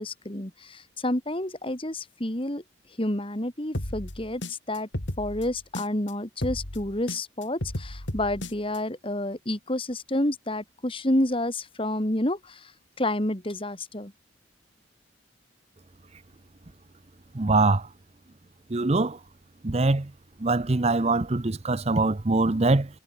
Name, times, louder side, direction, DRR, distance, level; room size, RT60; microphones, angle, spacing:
voice 1, 0.0-2.6 3.0-4.9 5.2-12.6 13.0-14.1, left 1 dB, 30° left, 2.7 m, -29 dB
sound 1, 3.7-6.1 6.4-8.8, left 1 dB, 70° left, 3.7 m, -34 dB
voice 2, 17.3-17.8 18.7-19.2 19.6-20.1 20.4-22.9, right 2 dB, 35° right, 0.7 m, -23 dB
head